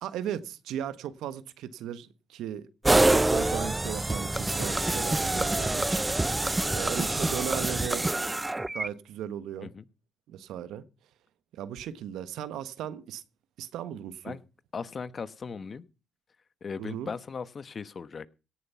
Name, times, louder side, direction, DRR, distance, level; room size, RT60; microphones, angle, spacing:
voice 1, 0.0-2.7 3.0-6.0 6.7-8.1 8.7-9.7 10.3-10.8 11.5-13.2 13.6-14.3 16.8-17.1, right 10 dB, 85° right, 1.4 m, -37 dB
sound 1, 2.8-8.9, right 2 dB, 15° right, 0.7 m, -26 dB
voice 2, 14.7-15.8 16.6-18.3, left 5 dB, 40° left, 1.1 m, -38 dB
17.5 x 9.5 x 5.8 m
cardioid pair, 90°, 0 cm